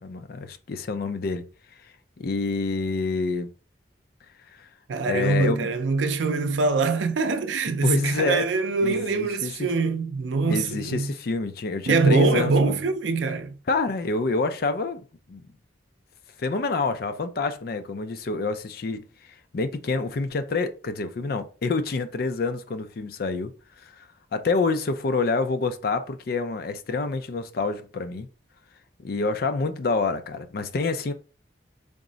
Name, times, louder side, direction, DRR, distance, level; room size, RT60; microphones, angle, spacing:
voice 1, 0.0-1.4 2.2-3.5 4.6-4.7 5.1-5.7 7.8-8.5 8.8-9.7 10.5-12.8 13.7-15.4 16.4-19.0 19.5-23.5 23.8-24.1 24.3-28.3 29.0-31.1, left 3 dB, 55° left, 0.4 m, -27 dB
voice 2, 4.9-11.1 11.9-13.6, right 3 dB, 85° right, 0.4 m, -23 dB
3.5 x 2.0 x 3.8 m
head